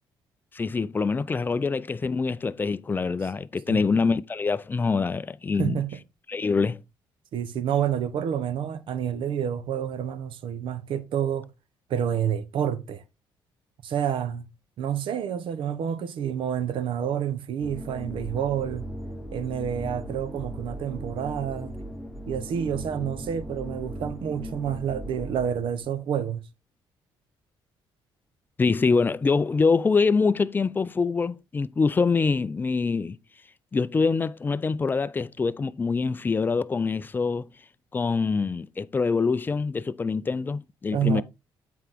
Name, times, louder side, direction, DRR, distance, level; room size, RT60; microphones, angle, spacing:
voice 1, 0.5-5.8 6.3-6.8 28.6-33.2 33.7-37.5 37.9-41.2, left 4 dB, 20° left, 0.4 m, -25 dB
voice 2, 5.6-6.0 7.3-11.5 11.9-13.0 13.8-14.4 14.8-18.9 19.3-21.8 22.3-26.4 40.9-41.2, right 9 dB, 70° right, 0.9 m, -28 dB
sound 1, 17.6-25.9, equal, ahead, 0.9 m, -38 dB
7.9 x 4.7 x 3.5 m
cardioid pair, 110°, 9 cm